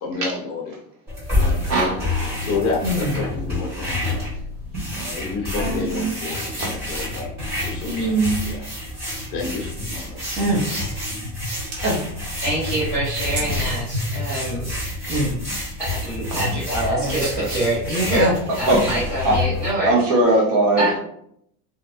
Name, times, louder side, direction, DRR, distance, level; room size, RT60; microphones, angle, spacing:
voice 1, 0.0-0.8 1.3-4.3 4.9-7.3 7.6-8.7 9.3-10.2 10.8-10.9, left 4 dB, 30° left, 0 dB, 0.5 m, -30 dB
sound 1, 1.1-19.7, left 2 dB, 20° right, 1.2 m, -28 dB
voice 2, 1.6-2.0 4.7-5.1 5.6-5.8 6.6-6.7 8.0-8.2 10.6-10.8 11.1-11.3 13.5-13.6 15.5-15.6 16.3-16.5 18.7-18.9 19.2-19.4 19.8-21.0, right 1 dB, 75° right, -2 dB, 1.1 m, -21 dB
sound 2, 2.8-3.2 5.6-6.1 7.8-8.4 10.4-10.8 11.7-12.3 13.4-13.5 15.1-15.4 16.1-16.5 17.0-17.7 18.0-18.3, right 2 dB, 40° right, 0.6 m, -24 dB
voice 3, 12.4-14.7 15.8-18.3 18.6-20.0 20.8-20.9, right 1 dB, 5° right, -11 dB, 1.0 m, -25 dB
2.6 x 2.1 x 2.5 m, 0.70 s
cardioid pair, 160°, 46 cm